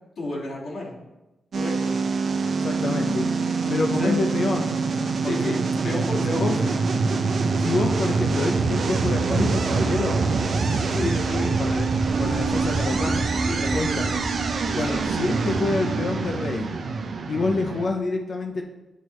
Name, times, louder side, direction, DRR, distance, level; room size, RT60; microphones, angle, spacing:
voice 1, 0.2-0.9 1.5-2.0 3.6-4.2 5.2-6.9 10.9-11.7 13.5-14.2 14.8-15.0, left 2 dB, 70° left, -5 dB, 2.1 m, -31 dB
sound 1, 1.5-17.9, right 4 dB, 55° right, 0.7 m, -25 dB
voice 2, 2.6-3.3 3.7-4.7 5.2-5.6 6.4-6.5 7.6-10.2 11.6-11.9 12.2-13.3 13.7-14.0 14.7-16.7 17.3-18.6, left 3 dB, 45° left, 2 dB, 0.5 m, -27 dB
sound 2, 10.8-16.7, right 2 dB, 20° right, 0.4 m, -35 dB
Wind instrument woodwind instrument, 12.0-16.5, right 6 dB, 90° right, 0.8 m, -33 dB
10.0 x 4.6 x 3.1 m, 1.0 s
wide cardioid pair, 155°, 0 cm